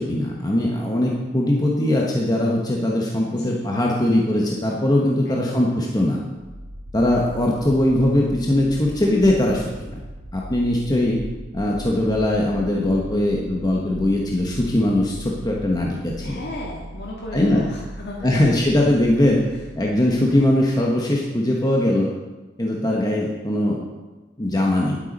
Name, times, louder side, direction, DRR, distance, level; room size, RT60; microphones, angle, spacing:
voice 1, 0.0-6.2 6.9-9.9 10.3-11.2 11.5-16.4 17.3-17.7 18.2-19.5 19.7-22.1 22.6-23.8 24.4-25.0, left 1 dB, 20° left, -2 dB, 1.1 m, -20 dB
voice 2, 3.3-3.7 5.3-5.7 16.2-18.5 19.5-19.6, left 1 dB, 60° left, -4 dB, 1.7 m, -35 dB
Low freq rumble, 6.3-21.1, equal, 15° right, 3.1 m, -38 dB
11.0 x 8.1 x 5.3 m, 1.2 s
head